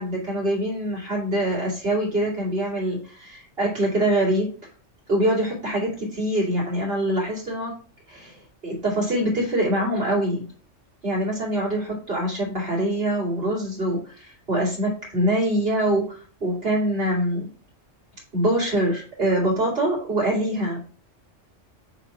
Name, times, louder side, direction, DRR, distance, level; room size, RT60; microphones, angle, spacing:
voice 1, 0.0-4.5 5.1-7.7 8.1-10.4 11.0-17.5 18.3-20.8, right 1 dB, 50° right, -5 dB, 2.8 m, -24 dB
6.9 x 3.0 x 5.7 m, 0.42 s
omnidirectional pair, 1.3 m